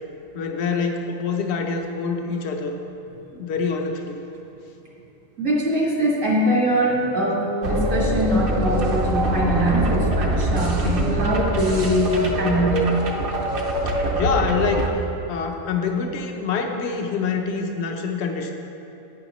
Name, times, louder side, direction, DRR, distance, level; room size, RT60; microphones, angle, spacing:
voice 1, 0.3-2.8 3.3-4.2 13.4-14.9 15.3-18.5, left 5 dB, 60° left, 3 dB, 1.0 m, -26 dB
voice 2, 5.4-13.5, equal, 70° right, -4 dB, 2.1 m, -22 dB
sound 1, 7.6-14.9, right 1 dB, 50° right, 0.9 m, -23 dB
11.5 x 9.1 x 3.1 m, 3.0 s
omnidirectional pair, 1.3 m